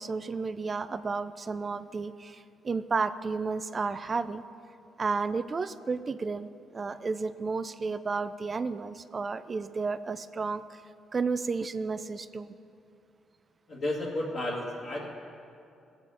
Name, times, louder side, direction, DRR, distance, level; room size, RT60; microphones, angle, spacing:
voice 1, 0.0-4.4 5.0-10.6 11.1-12.6, right 4 dB, 35° right, 12 dB, 0.4 m, -32 dB
voice 2, 13.7-15.1, left 1 dB, 55° left, -7 dB, 2.2 m, -32 dB
19.5 x 8.3 x 5.0 m, 2.6 s
cardioid pair, 90°, 0 cm